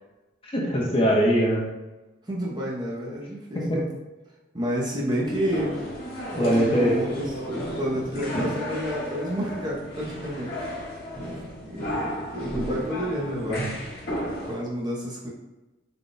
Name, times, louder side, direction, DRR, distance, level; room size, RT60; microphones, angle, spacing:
voice 1, 0.4-1.7 3.5-3.8 6.4-7.0 8.3-8.5 13.5-13.6, equal, 30° left, -3 dB, 0.7 m, -22 dB
voice 2, 2.3-3.8 4.5-5.8 6.4-10.5 11.1-13.7 14.4-15.3, equal, 25° right, -4 dB, 0.6 m, -30 dB
sound 1, 5.2-14.6, equal, 55° left, 1.1 m, -34 dB
3.8 x 2.2 x 3.8 m, 1.1 s
head